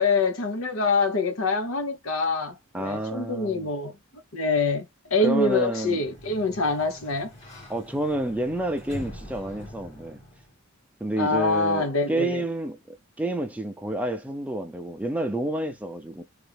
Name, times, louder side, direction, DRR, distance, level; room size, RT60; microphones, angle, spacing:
voice 1, 0.0-3.9 4.3-4.9 5.1-7.3 11.2-12.4, left 3 dB, 85° left, 0.9 m, -25 dB
voice 2, 2.7-3.7 5.2-6.0 7.7-10.2 11.0-16.2, right 1 dB, 5° right, 0.5 m, -29 dB
Sliding door, 5.7-10.6, left 1 dB, 30° left, 1.8 m, -44 dB
3.1 x 2.5 x 3.3 m
head